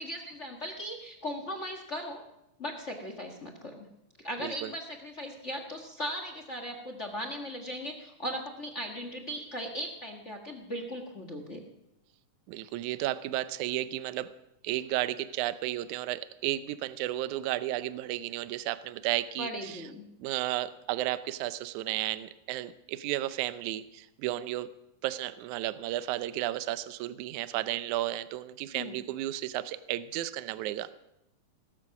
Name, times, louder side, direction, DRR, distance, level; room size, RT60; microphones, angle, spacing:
voice 1, 0.0-2.2 2.6-3.8 4.2-11.6 19.4-20.0 28.7-29.0, equal, 40° left, 5 dB, 1.1 m, -38 dB
voice 2, 4.4-4.7 12.5-14.3 14.6-19.8 20.2-24.7 25.0-31.0, right 15 dB, 75° right, 13 dB, 2.0 m, -33 dB
19.0 x 12.5 x 6.0 m, 0.85 s
omnidirectional pair, 3.9 m